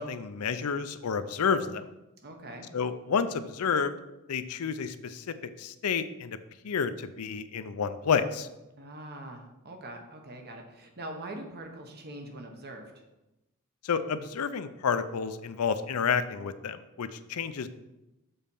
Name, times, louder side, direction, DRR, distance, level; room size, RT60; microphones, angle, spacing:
voice 1, 0.0-1.9 2.7-3.9 4.3-6.4 6.6-8.5 13.8-17.7, left 6 dB, 85° left, 11 dB, 0.5 m, -30 dB
voice 2, 2.2-2.7 8.8-12.9, right 1 dB, 45° right, 3 dB, 1.1 m, -43 dB
7.1 x 4.2 x 5.4 m, 0.98 s
head